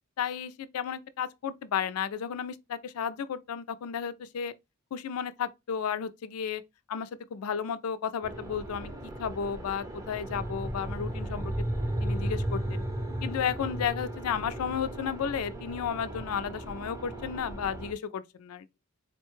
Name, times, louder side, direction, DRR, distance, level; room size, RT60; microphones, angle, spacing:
voice 1, 0.2-4.5 4.9-6.6 6.9-8.9 9.2-11.7 12.0-12.8 13.2-18.7, left 7 dB, 90° left, 0.4 m, -33 dB
sound 1, 8.2-17.9, right 1 dB, 15° right, 0.5 m, -35 dB
3.9 x 2.2 x 3.0 m
head